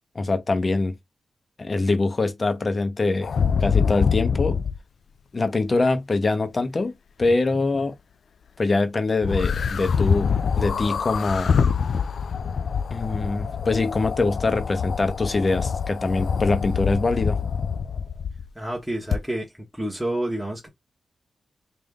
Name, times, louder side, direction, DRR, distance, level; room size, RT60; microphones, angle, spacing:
voice 1, 0.1-1.0 1.6-3.3 3.6-4.6 5.3-6.9 7.2-7.9 8.6-11.6 12.9-17.4, left 3 dB, 40° left, 0.8 m, -23 dB
sound 1, 3.2-4.8 9.2-18.5 19.1-19.2, left 6 dB, 75° left, 0.3 m, -25 dB
voice 2, 18.5-20.7, right 1 dB, 5° right, 1.2 m, -29 dB
3.6 x 2.6 x 3.5 m
cardioid pair, 65°, 0 cm